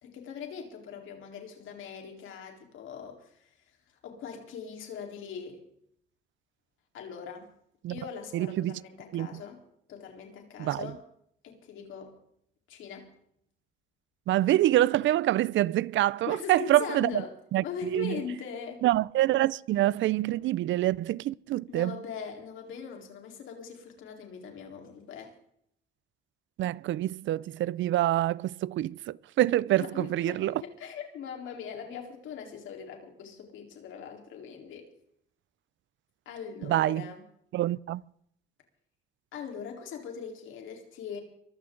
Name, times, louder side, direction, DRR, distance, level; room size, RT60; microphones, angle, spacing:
voice 1, 0.0-3.5 4.0-5.6 6.9-7.5 7.9-9.6 9.9-11.0 11.4-12.2 12.7-13.1 16.3-17.4 17.6-18.8 21.7-25.3 29.8-34.9 36.3-37.2 39.3-41.2, left 6 dB, 80° left, 4.0 m, -41 dB
voice 2, 8.3-8.8 9.1-9.4 10.6-10.9 14.3-17.2 17.5-18.2 18.8-22.0 26.6-30.6 36.7-37.1 37.5-38.0, right 14 dB, 75° right, 0.5 m, -26 dB
23.5 x 14.5 x 3.9 m
cardioid pair, 90°, 20 cm